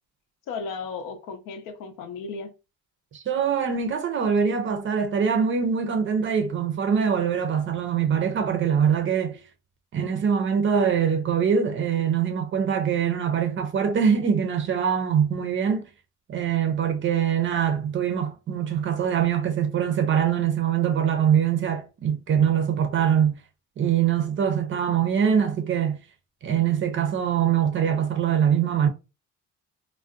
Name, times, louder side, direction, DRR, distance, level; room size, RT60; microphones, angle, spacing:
voice 1, 0.5-2.5, left 4 dB, 80° left, 0.6 m, -35 dB
voice 2, 3.1-9.4 9.9-15.9 16.3-23.4 23.8-26.0 26.4-28.9, right 8 dB, 40° right, 0.5 m, -23 dB
2.5 x 2.1 x 2.4 m
cardioid pair, 130°, 32 cm